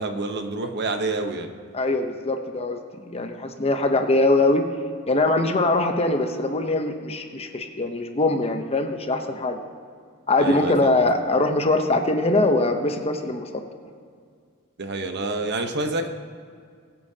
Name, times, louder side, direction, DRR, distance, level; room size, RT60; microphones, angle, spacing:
voice 1, 0.0-1.5 10.4-11.1 14.8-16.1, right 2 dB, 50° right, 6 dB, 0.9 m, -28 dB
voice 2, 1.7-4.6 5.1-9.6 10.3-13.6, left 2 dB, 30° left, 6 dB, 0.8 m, -22 dB
21.0 x 8.5 x 2.8 m, 2.1 s
head